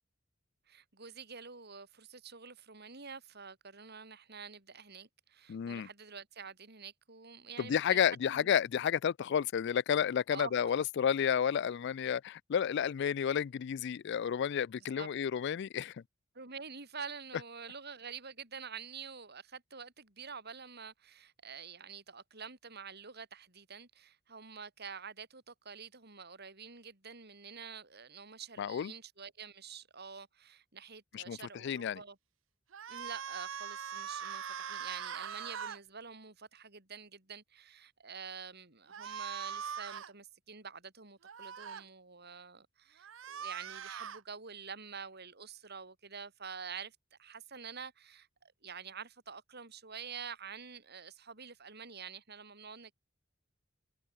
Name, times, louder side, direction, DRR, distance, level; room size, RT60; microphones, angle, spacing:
voice 1, 0.7-8.5 10.3-10.5 15.0-15.1 16.3-32.2 32.9-52.9, right 6 dB, 55° right, 5.3 m, -47 dB
voice 2, 5.5-5.9 7.6-16.0 28.6-28.9 31.1-32.0, left 8 dB, 60° left, 0.4 m, -31 dB
sound 1, 32.7-35.8 38.9-40.1 41.2-41.8 43.0-44.2, right 7 dB, 70° right, 0.7 m, -41 dB
head